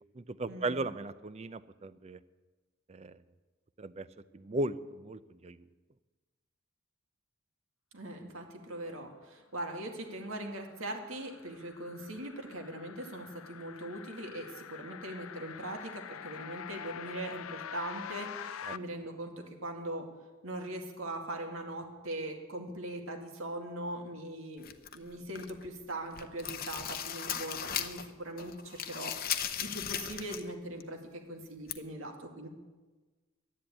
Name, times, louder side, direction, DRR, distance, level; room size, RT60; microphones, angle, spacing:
voice 1, 0.1-2.2 2.9-3.2 3.8-4.1 4.3-5.6 18.7-18.8, right 2 dB, 30° right, 15 dB, 0.5 m, -37 dB
voice 2, 7.9-20.1 20.4-24.7 24.9-32.5, right 1 dB, 85° right, 3 dB, 2.2 m, -41 dB
sound 1, 10.4-18.8, left 8 dB, 85° left, 0.5 m, -45 dB
sound 2, 24.6-25.7 26.0-28.1 28.4-30.5 30.8-30.9 31.7-31.8, left 9 dB, 45° left, 0.8 m, -37 dB
12.0 x 10.5 x 8.7 m, 1.3 s
head